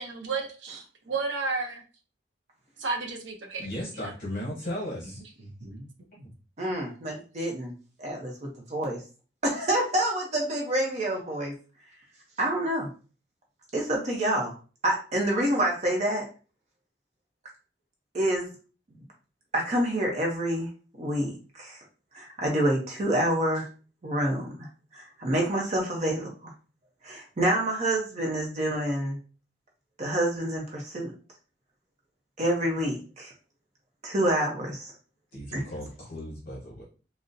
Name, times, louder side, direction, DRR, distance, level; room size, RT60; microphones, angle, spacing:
voice 1, 0.0-1.8 2.8-3.7 5.6-5.9 6.2-6.3, right 4 dB, 85° right, 3 dB, 0.6 m, -32 dB
voice 2, 3.6-5.2 35.3-36.8, left 1 dB, 50° left, -4 dB, 0.8 m, -36 dB
voice 3, 6.6-7.7 8.0-9.0 9.4-11.5 12.4-12.9 13.7-14.5 14.8-16.2 18.1-18.5 19.5-20.7 21.0-21.8 22.1-23.7 24.0-24.7 24.9-26.5 27.0-29.2 30.0-31.1 32.4-33.3 34.0-34.9 35.5-35.6, right 1 dB, 40° right, 0 dB, 0.6 m, -27 dB
3.8 x 2.0 x 2.5 m, 0.36 s
head